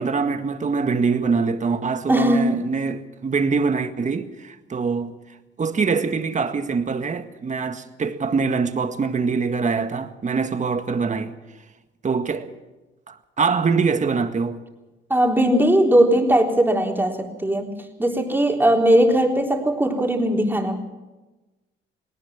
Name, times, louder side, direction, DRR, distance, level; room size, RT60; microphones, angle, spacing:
voice 1, 0.0-5.1 5.6-11.3 12.0-12.5 13.1-14.6, right 5 dB, 35° right, 1.8 m, -24 dB
voice 2, 2.1-2.6 15.1-20.8, right 1 dB, 10° right, 3.7 m, -19 dB
19.0 x 18.5 x 7.2 m
cardioid pair, 90°, 20 cm